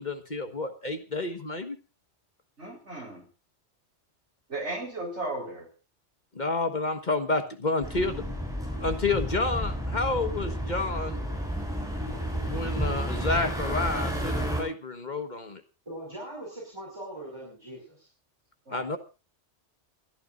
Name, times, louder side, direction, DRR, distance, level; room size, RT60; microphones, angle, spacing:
voice 1, 0.0-1.8 6.3-8.3 8.6-11.4 12.5-15.6 18.7-19.0, left 3 dB, 40° left, 7 dB, 1.5 m, -30 dB
voice 2, 2.6-3.2 4.5-5.7 18.7-18.9, right 2 dB, 75° right, 2 dB, 4.7 m, -35 dB
sound 1, 7.8-14.6, equal, 5° right, 6.3 m, -31 dB
voice 3, 15.9-18.1, right 1 dB, 25° right, -3 dB, 5.5 m, -41 dB
27.5 x 12.5 x 2.6 m, 0.32 s
omnidirectional pair, 1.2 m